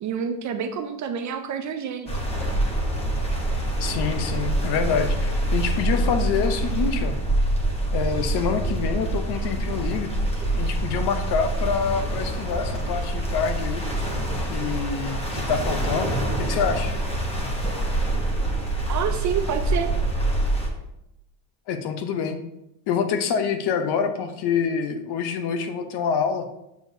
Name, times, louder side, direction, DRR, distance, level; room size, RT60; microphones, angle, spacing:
voice 1, 0.0-2.2 18.9-19.9, right 7 dB, 40° right, 7 dB, 0.4 m, -28 dB
sound 1, 2.1-20.7, right 1 dB, 10° left, 1.0 m, -25 dB
voice 2, 3.8-7.1 7.9-10.1 10.5-13.8 14.5-16.1 16.4-17.0 21.7-22.4 22.9-26.5, left 6 dB, 55° left, 8 dB, 0.8 m, -26 dB
7.0 x 6.2 x 2.7 m, 0.85 s
cardioid pair, 150°, 49 cm